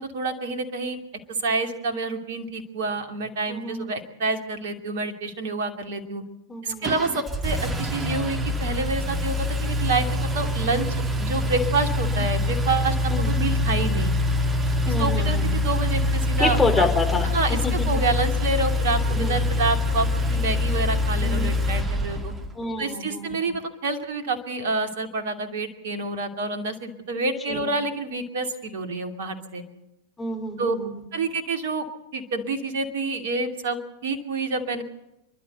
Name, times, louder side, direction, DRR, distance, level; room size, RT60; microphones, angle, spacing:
voice 1, 0.1-1.0 1.3-6.2 6.6-14.1 14.9-16.9 17.3-22.3 22.8-29.6 30.6-30.7 31.1-31.8 32.1-34.8, right 3 dB, 55° right, 6 dB, 2.7 m, -28 dB
voice 2, 3.5-3.9 6.5-6.9 12.1-12.2 13.1-13.3 14.8-15.6 16.4-18.0 19.1-19.4 21.2-21.5 22.5-23.5 27.5-27.7 30.2-31.1, left 3 dB, 10° left, 2 dB, 4.3 m, -28 dB
Engine, 6.8-22.5, left 2 dB, 20° right, 2.1 m, -25 dB
29.5 x 12.0 x 8.0 m, 0.90 s
figure-of-eight pair, 90°, 0 cm